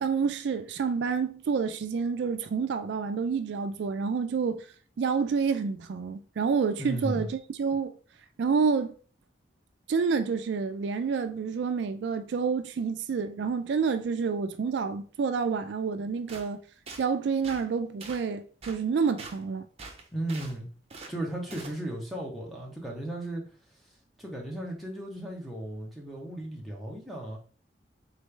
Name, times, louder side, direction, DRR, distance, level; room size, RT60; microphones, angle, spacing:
voice 1, 0.0-4.6 5.0-7.9 8.4-8.9 9.9-16.6 17.0-19.6, right 5 dB, 70° right, 0.3 m, -28 dB
voice 2, 6.8-7.3 20.1-20.7 21.1-23.4 24.2-27.4, right 1 dB, ahead, 0.9 m, -35 dB
sound 1, 16.3-16.5 16.9-17.0 17.4-17.6 18.0-18.2 18.6-18.8 19.2-19.4 19.8-20.5 20.9-21.1 21.5-21.8, right 3 dB, 35° right, 0.7 m, -43 dB
3.9 x 3.2 x 3.3 m
head